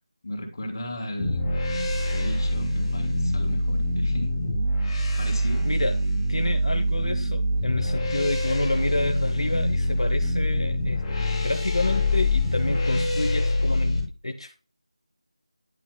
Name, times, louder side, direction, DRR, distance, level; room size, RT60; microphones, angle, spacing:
voice 1, 0.2-1.5 2.1-4.3 5.2-5.7, left 1 dB, 40° left, 2 dB, 2.8 m, -35 dB
sound 1, 1.2-14.0, left 1 dB, 10° left, 1.8 m, -25 dB
voice 2, 5.6-6.0 6.3-11.0 11.4-14.6, left 2 dB, 75° left, 5 dB, 1.0 m, -29 dB
11.0 x 5.8 x 2.2 m, 0.33 s
figure-of-eight pair, 165°, 3 cm